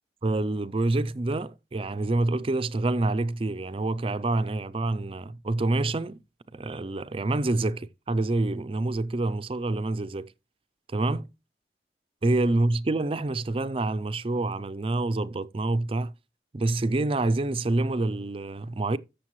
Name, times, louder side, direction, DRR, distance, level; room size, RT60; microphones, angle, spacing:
voice 1, 0.2-6.2 6.5-10.3 10.9-11.3 12.2-16.1 16.5-19.0, right 2 dB, 30° right, 0.4 m, -27 dB
13.0 x 6.8 x 3.1 m
head